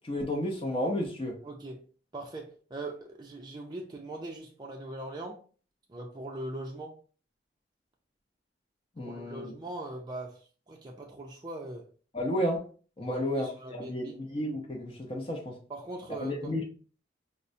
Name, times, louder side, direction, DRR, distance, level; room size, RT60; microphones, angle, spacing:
voice 1, 0.0-1.4 9.0-9.5 12.1-12.6 13.0-15.6 16.2-16.6, left 1 dB, 30° left, 0.6 m, -32 dB
voice 2, 1.4-1.8 2.1-5.4 5.9-7.0 9.0-11.9 13.0-14.1 15.7-16.6, right 2 dB, 25° right, 0.4 m, -41 dB
5.4 x 2.1 x 2.5 m
head